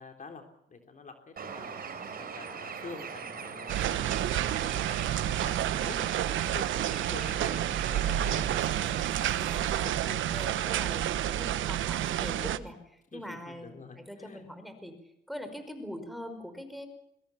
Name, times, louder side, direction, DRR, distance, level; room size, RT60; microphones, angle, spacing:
voice 1, 0.0-8.6 13.1-14.5, left 4 dB, 40° left, 5 dB, 3.6 m, -47 dB
Bird, 1.4-9.6, right 6 dB, 50° right, 4.6 m, -41 dB
sound 1, 3.7-12.6, right 12 dB, 75° right, 1.1 m, -30 dB
voice 2, 5.4-6.4 9.5-13.7 14.1-16.9, equal, ahead, 8 dB, 5.2 m, -43 dB
21.5 x 21.5 x 7.2 m, 0.79 s
cardioid pair, 90°, 20 cm